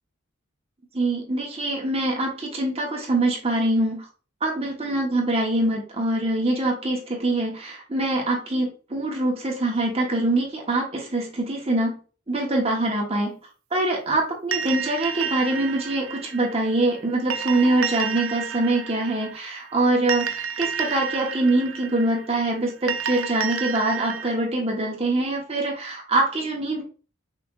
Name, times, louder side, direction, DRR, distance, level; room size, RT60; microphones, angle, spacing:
voice 1, 0.9-4.0 4.4-12.0 12.3-13.4 13.7-26.8, right 2 dB, 30° right, -1 dB, 1.2 m, -24 dB
sound 1, 14.5-24.3, right 7 dB, 75° right, 0.6 m, -31 dB
5.7 x 3.3 x 2.4 m, 0.36 s
head